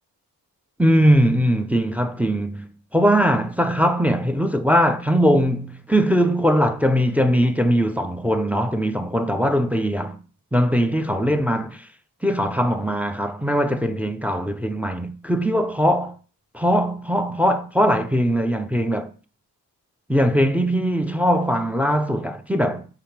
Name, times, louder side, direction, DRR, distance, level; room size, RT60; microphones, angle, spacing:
voice 1, 0.8-10.2 10.5-11.9 12.2-16.1 16.5-19.1 20.1-22.9, equal, 5° right, 0.3 m, -20 dB
5.6 x 3.4 x 5.7 m
wide cardioid pair, 155°, 39 cm